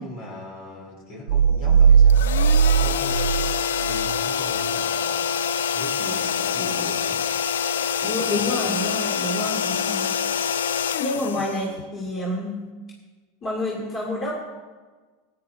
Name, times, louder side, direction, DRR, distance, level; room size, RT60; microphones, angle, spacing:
voice 1, 0.0-3.5 3.8-5.3 5.7-7.2 8.0-8.7 11.3-11.4, left 1 dB, 55° left, 0 dB, 4.2 m, -38 dB
sound 1, 1.3-4.1, right 7 dB, 80° right, 0.4 m, -18 dB
sound 2, 2.1-12.1, left 8 dB, 85° left, 0.4 m, -26 dB
voice 2, 7.8-10.2 11.0-12.7 13.4-14.4, left 1 dB, 35° left, -3 dB, 2.6 m, -28 dB
15.5 x 10.0 x 3.7 m, 1.3 s
hypercardioid pair, 100°, 0 cm